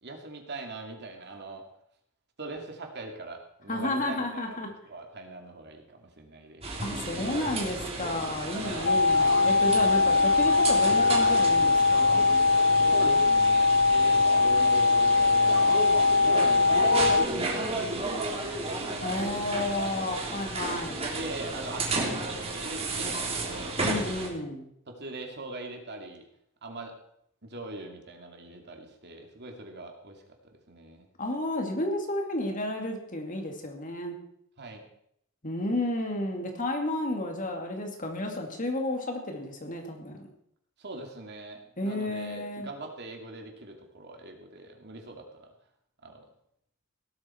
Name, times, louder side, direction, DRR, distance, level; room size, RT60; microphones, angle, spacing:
voice 1, 0.0-1.7 2.4-6.6 8.6-9.1 10.8-11.0 12.9-20.4 21.1-23.7 24.9-26.2 26.6-27.0 27.4-31.1 34.6-34.8 40.8-45.5 46.0-46.3, right 2 dB, 55° right, 3 dB, 2.6 m, -41 dB
voice 2, 3.7-4.7 6.8-12.3 19.0-21.0 23.8-24.7 31.2-34.2 35.4-40.3 41.8-42.7, left 1 dB, 40° left, 3 dB, 2.6 m, -32 dB
sound 1, 6.6-24.3, right 2 dB, 30° right, 3.2 m, -33 dB
sound 2, 8.9-17.3, left 3 dB, 55° left, 0.6 m, -21 dB
17.5 x 12.5 x 4.5 m, 0.72 s
head